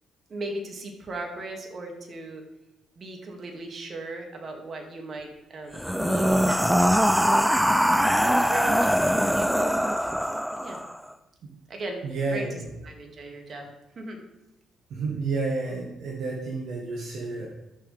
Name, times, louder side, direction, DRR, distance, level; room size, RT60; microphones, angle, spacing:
voice 1, 0.3-2.4 3.0-7.5 8.2-9.7 10.5-10.8 11.7-12.5 12.8-14.2, right 2 dB, 50° right, 2 dB, 2.3 m, -38 dB
sound 1, 5.7-11.0, equal, ahead, 0.5 m, -22 dB
voice 2, 12.0-12.7 14.9-17.5, right 3 dB, 65° right, -2 dB, 1.8 m, -30 dB
13.5 x 6.5 x 3.5 m, 0.99 s
hypercardioid pair, 50°, 0 cm